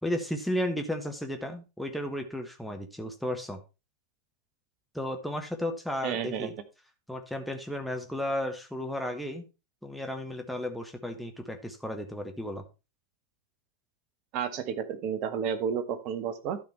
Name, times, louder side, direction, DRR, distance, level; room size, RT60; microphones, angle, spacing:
voice 1, 0.0-3.6 4.9-6.5 7.1-9.4 9.8-12.6, left 1 dB, ahead, 4 dB, 1.3 m, -34 dB
voice 2, 6.0-6.5 14.3-16.6, right 7 dB, 40° right, 10 dB, 1.2 m, -31 dB
12.0 x 5.3 x 4.4 m, 0.29 s
figure-of-eight pair, 90°, 0 cm